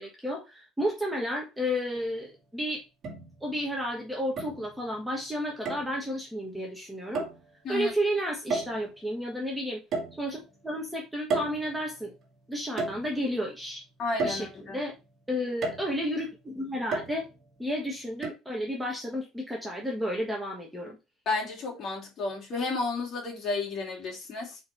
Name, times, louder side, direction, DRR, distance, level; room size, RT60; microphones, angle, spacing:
voice 1, 0.0-2.8 3.4-7.3 7.7-9.8 10.2-12.1 12.5-13.8 14.2-14.9 15.3-17.3 17.6-21.0, equal, 5° right, 1.4 m, -32 dB
sound 1, 2.0-2.1 3.0-3.7 4.4-5.0 5.7-6.0 7.1-7.5 8.5-9.0 9.9-10.6 11.3-12.2 12.8-13.5 14.2-14.9 15.6-16.1 16.9-17.5 18.2-18.3, right 3 dB, 40° right, 2.0 m, -33 dB
voice 2, 14.0-14.8 21.3-24.6, left 3 dB, 35° left, 2.8 m, -32 dB
5.3 x 4.4 x 4.5 m
cardioid pair, 155°, 0 cm